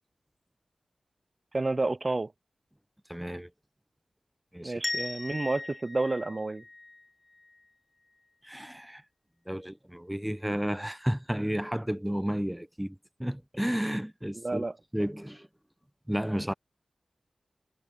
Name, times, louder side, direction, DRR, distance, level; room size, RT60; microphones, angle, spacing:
voice 1, 1.5-2.3 4.6-6.6 14.3-14.7, right 2 dB, 45° right, 0.4 m, -30 dB
voice 2, 3.1-3.5 4.5-4.7 8.4-9.0 9.5-12.9 13.2-14.6 14.9-15.5 16.1-16.5, equal, 5° right, 0.9 m, -32 dB
sound 1, 4.8-7.6, left 3 dB, 45° left, 0.4 m, -38 dB
cardioid pair, 45°, 0 cm